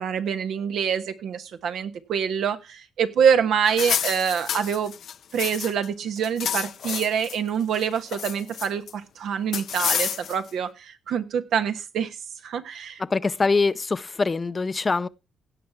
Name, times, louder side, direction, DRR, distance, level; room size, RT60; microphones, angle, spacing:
voice 1, 0.0-4.9 5.3-12.2 12.4-13.0, right 7 dB, 80° right, 1.3 m, -25 dB
sound 1, 3.7-5.9 6.2-7.4 7.7-8.9 9.5-10.5, left 8 dB, 70° left, 0.7 m, -29 dB
voice 2, 13.0-15.1, left 4 dB, 35° left, 0.6 m, -23 dB
17.0 x 5.9 x 4.6 m
cardioid pair, 75°, 0 cm